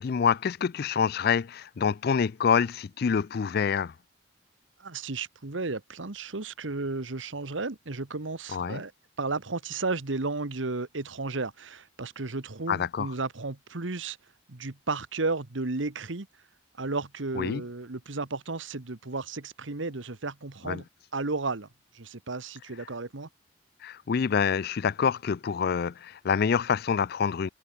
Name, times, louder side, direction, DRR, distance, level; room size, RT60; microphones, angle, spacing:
voice 1, 0.0-3.9 8.5-8.8 12.7-13.1 17.4-17.6 20.7-20.8 23.8-27.5, left 6 dB, 50° left, 0.4 m, -26 dB
voice 2, 4.8-8.9 9.2-14.2 14.5-16.3 16.8-20.8 21.1-21.7 21.9-23.3, right 3 dB, 75° right, 1.4 m, -33 dB
head